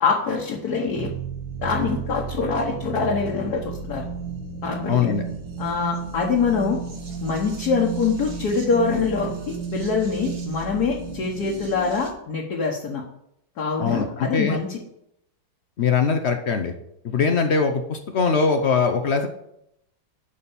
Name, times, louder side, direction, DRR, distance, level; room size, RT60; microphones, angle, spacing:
voice 1, 0.0-1.1 1.6-4.0 4.6-5.2 5.6-6.8 7.2-13.0 13.6-14.8, left 5 dB, 55° left, -1 dB, 1.6 m, -24 dB
sound 1, 1.0-12.1, right 6 dB, 85° right, 2.3 m, -33 dB
voice 2, 4.9-5.2 13.8-14.6 15.8-16.7 17.0-19.3, left 5 dB, 75° left, 6 dB, 0.6 m, -21 dB
11.5 x 4.2 x 7.1 m, 0.78 s
omnidirectional pair, 2.2 m